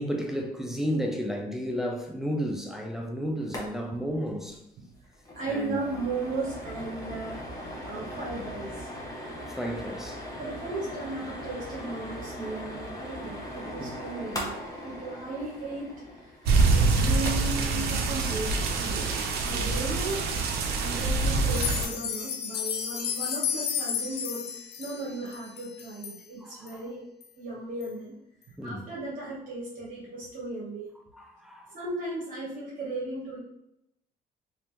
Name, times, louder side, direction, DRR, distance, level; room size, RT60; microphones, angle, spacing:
voice 1, 0.0-4.6 5.5-5.8 9.5-10.2 13.8-14.0 19.5-19.7 20.9-21.0 26.4-26.7 28.6-28.8 31.1-31.8, equal, ahead, 0.5 m, -32 dB
sound 1, 3.4-3.7 3.9-4.0 4.4-4.6 4.9-17.6, equal, 20° left, 0.9 m, -39 dB
voice 2, 5.3-7.4 7.8-8.9 10.4-14.6 14.8-15.9 16.2-20.3 20.8-27.0 27.4-28.1 28.6-30.9 31.7-33.4, right 2 dB, 55° right, 0.9 m, -36 dB
sound 2, 16.5-21.9, right 3 dB, 70° right, 0.6 m, -25 dB
sound 3, 21.4-26.2 26.7-26.8 27.2-27.3 27.8-27.9, left 8 dB, 75° left, 0.4 m, -32 dB
2.8 x 2.6 x 3.5 m
cardioid pair, 110°, 17 cm